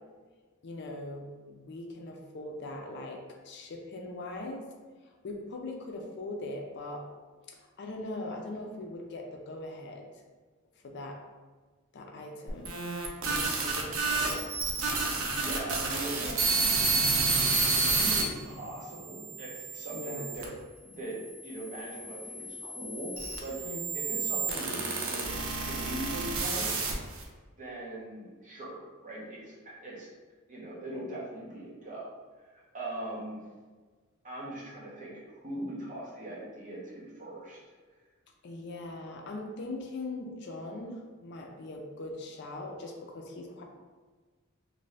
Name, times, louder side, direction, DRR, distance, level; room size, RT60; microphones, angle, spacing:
voice 1, 0.6-4.7 5.0-7.0 7.5-10.1 10.8-11.2 11.9-12.8 13.2-14.5 19.9-20.3 23.6-24.1 38.4-43.6, left 2 dB, 55° left, 1 dB, 0.4 m, -41 dB
sound 1, 12.5-18.2 18.9-20.4 21.2-27.2, right 3 dB, 70° right, 0.5 m, -30 dB
voice 2, 15.3-16.5 17.9-20.5 20.8-21.2 21.4-23.1 23.4-23.6 23.9-25.3 25.6-26.7 27.6-30.1 30.5-32.1 32.4-33.4 34.2-37.6, right 1 dB, 40° right, -5 dB, 0.8 m, -40 dB
sound 2, 16.5-19.8, equal, 35° left, 0.9 m, -42 dB
2.6 x 2.6 x 3.2 m, 1.4 s
head